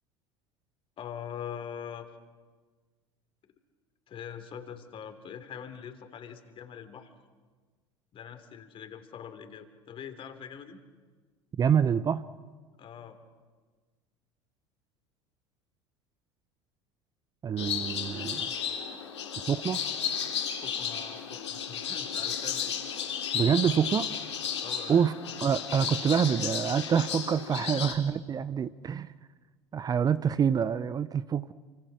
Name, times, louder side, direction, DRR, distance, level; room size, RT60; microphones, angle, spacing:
voice 1, 1.0-2.1 4.1-7.1 8.1-10.8 12.8-13.2 20.5-22.8 24.6-25.0 27.6-27.9, left 8 dB, 35° left, 9 dB, 3.2 m, -43 dB
voice 2, 11.6-12.3 17.4-18.5 19.5-19.8 23.3-24.1 24.9-25.1 25.4-29.1 29.7-31.5, right 7 dB, 25° right, 15 dB, 0.7 m, -26 dB
sound 1, 17.6-27.9, left 7 dB, 75° left, 3.6 m, -33 dB
29.0 x 25.5 x 6.4 m, 1.4 s
figure-of-eight pair, 75°, 15 cm